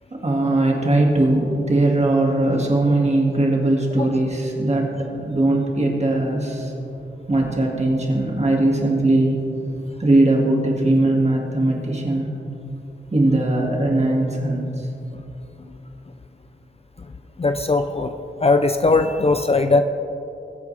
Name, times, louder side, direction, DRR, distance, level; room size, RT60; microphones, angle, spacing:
voice 1, 0.1-6.7 7.3-9.4 10.0-12.3 13.1-14.9, right 2 dB, 35° right, -1 dB, 2.0 m, -20 dB
voice 2, 17.4-18.1 18.4-19.8, left 3 dB, 30° left, 8 dB, 0.4 m, -19 dB
21.5 x 8.4 x 3.4 m, 2.9 s
wide cardioid pair, 110°, 20 cm